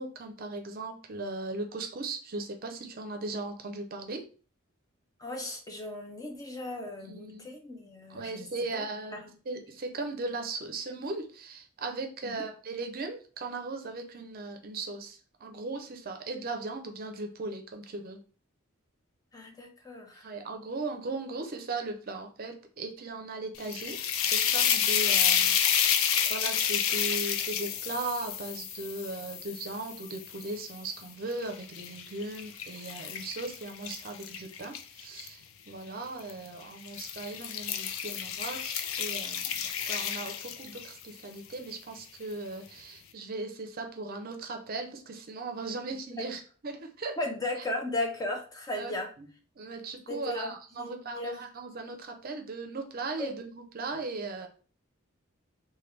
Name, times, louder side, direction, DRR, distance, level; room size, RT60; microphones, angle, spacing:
voice 1, 0.0-4.2 7.0-7.5 8.1-9.2 9.5-18.2 20.2-24.0 24.3-35.4 35.7-39.6 39.9-47.1 48.8-49.3 49.6-54.5, right 3 dB, 45° right, 5 dB, 0.5 m, -38 dB
voice 2, 5.2-8.5 8.7-8.9 9.1-9.3 12.2-12.4 19.3-20.3 46.2-46.3 47.2-49.1 50.1-51.4 53.2-53.3, left 1 dB, 20° left, 2 dB, 0.5 m, -36 dB
sound 1, 23.6-30.8 31.3-35.3 36.2-36.5 36.8-41.0, left 8 dB, 80° left, 0.4 m, -30 dB
3.2 x 2.2 x 3.2 m, 0.39 s
head